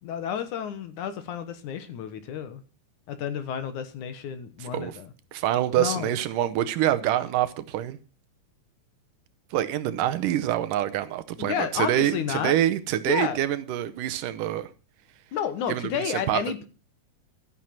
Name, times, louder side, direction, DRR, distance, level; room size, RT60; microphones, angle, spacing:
voice 1, 0.0-2.6 3.1-5.1 5.8-6.1 11.4-12.6 13.1-13.4 15.3-16.7, left 8 dB, 70° left, 2.5 m, -31 dB
voice 2, 4.6-5.0 5.3-8.0 9.5-14.7 15.7-16.4, right 12 dB, 75° right, 2.4 m, -26 dB
12.5 x 9.2 x 5.9 m
omnidirectional pair, 3.9 m